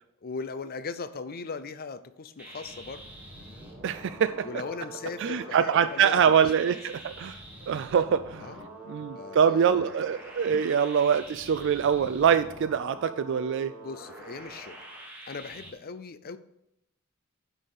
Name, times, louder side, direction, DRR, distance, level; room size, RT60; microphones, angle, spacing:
voice 1, 0.2-3.0 4.4-6.8 8.4-8.7 9.2-9.9 13.8-14.8 15.3-16.4, left 4 dB, 45° left, 13 dB, 0.6 m, -39 dB
sound 1, 2.4-15.7, right 1 dB, 5° right, 1.8 m, -45 dB
voice 2, 3.8-4.5 5.2-7.4 7.7-8.5 8.9-13.7, right 7 dB, 60° right, 12 dB, 0.3 m, -24 dB
9.0 x 4.1 x 6.5 m, 0.81 s
head